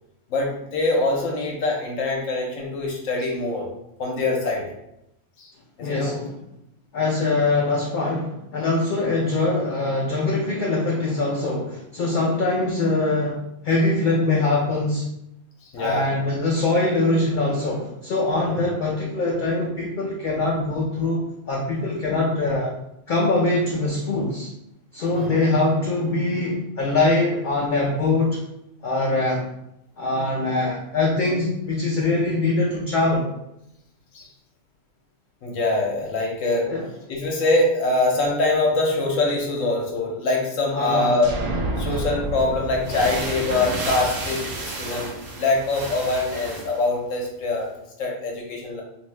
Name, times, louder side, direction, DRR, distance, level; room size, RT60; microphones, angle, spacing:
voice 1, 0.3-3.7 4.0-4.7 5.4-5.5 5.8-6.2 9.0-9.2 15.6-16.1 18.4-18.5 25.1-25.3 34.1-34.3 35.4-36.7 37.1-41.4 41.8-48.8, left 2 dB, 80° left, -1 dB, 1.0 m, -24 dB
voice 2, 5.8-6.4 6.9-15.1 15.8-22.7 23.1-24.5 24.9-28.4 28.8-29.5 30.0-33.3 36.7-36.8 40.7-41.2, left 2 dB, 60° left, -3 dB, 0.5 m, -23 dB
sound 1, 41.2-44.9, right 2 dB, 85° right, 1.0 m, -30 dB
sound 2, 42.1-42.2 42.7-46.9, right 2 dB, 60° right, 0.9 m, -32 dB
2.6 x 2.6 x 3.1 m, 0.83 s
omnidirectional pair, 1.3 m